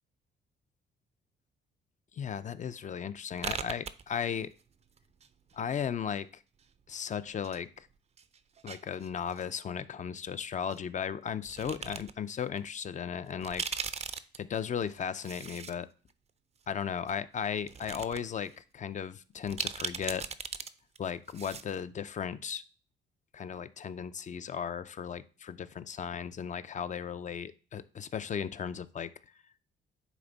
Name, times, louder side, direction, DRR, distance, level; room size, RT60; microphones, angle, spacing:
voice 1, 2.1-4.5 5.5-6.4 6.9-7.9 8.6-13.6 14.4-15.9 16.7-20.3 21.0-22.6 23.3-29.1, left 7 dB, 40° left, 14 dB, 0.5 m, -36 dB
sound 1, 3.4-4.6 4.9-5.8 6.6-7.6 7.9-9.4 10.7-10.8 11.5-12.1 12.6-12.7 13.3-15.7 16.1-16.2 17.1-17.2 17.6-18.2 18.5-18.6 19.5-20.7 21.0-21.1 21.3-21.7, right 6 dB, 35° right, 0.5 m, -39 dB
9.3 x 3.5 x 4.0 m, 0.37 s
cardioid pair, 90°, 20 cm